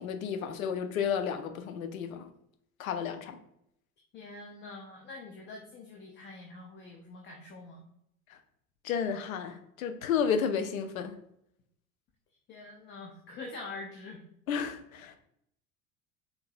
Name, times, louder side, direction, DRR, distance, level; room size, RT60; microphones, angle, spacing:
voice 1, 0.0-2.3 2.8-3.4 8.8-11.1 14.5-15.2, left 7 dB, 65° left, 0.6 m, -32 dB
voice 2, 4.1-7.8 12.5-14.2, left 3 dB, 25° left, 0.5 m, -45 dB
4.5 x 2.6 x 2.5 m
figure-of-eight pair, 70°, 44 cm